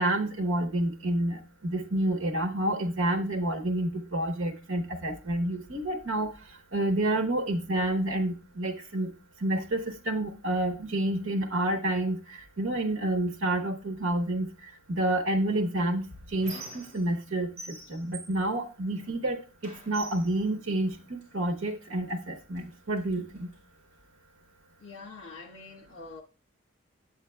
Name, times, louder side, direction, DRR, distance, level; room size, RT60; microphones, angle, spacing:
voice 1, 0.0-9.1 9.4-23.5, right 1 dB, 80° right, 1.0 m, -29 dB
Squeak, 15.5-17.3 17.6-19.2 19.6-21.3 22.1-22.2 22.6-23.6, right 3 dB, 35° right, 2.6 m, -46 dB
voice 2, 24.8-26.2, left 4 dB, 60° left, 1.5 m, -45 dB
8.1 x 8.1 x 2.3 m
head